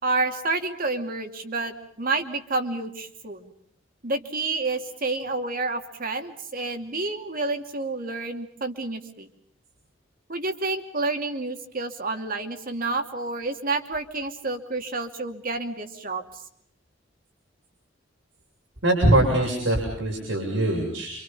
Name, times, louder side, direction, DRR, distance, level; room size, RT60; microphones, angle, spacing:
voice 1, 0.0-3.5 4.0-9.3 10.3-16.2, right 3 dB, 50° right, 6 dB, 2.7 m, -29 dB
voice 2, 18.8-21.1, right 1 dB, 85° right, -1 dB, 7.6 m, -22 dB
29.0 x 26.5 x 5.6 m, 0.66 s
head